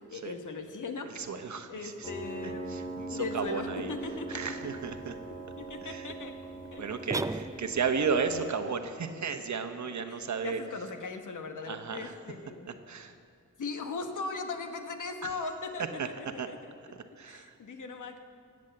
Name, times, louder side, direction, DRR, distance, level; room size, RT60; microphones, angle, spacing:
voice 1, 0.1-1.1 1.7-4.5 5.3-6.3 6.7-6.8 9.8-12.7 13.6-16.1 16.5-16.7 17.3-18.2, left 4 dB, 70° left, 5 dB, 1.4 m, -39 dB
voice 2, 1.1-2.1 2.7-3.9 4.3-5.2 5.8-6.1 6.8-10.6 11.7-12.1 12.9-13.1 15.2-15.3 16.0-16.1 16.4-16.5 16.9-17.6, right 5 dB, 65° right, 7 dB, 1.1 m, -34 dB
Piano, 2.0-8.5, right 2 dB, 15° left, 2.4 m, -41 dB
sound 1, 7.1-8.0, right 2 dB, 10° right, 0.4 m, -34 dB
18.5 x 7.5 x 7.8 m, 2.3 s
cardioid pair, 75°, 32 cm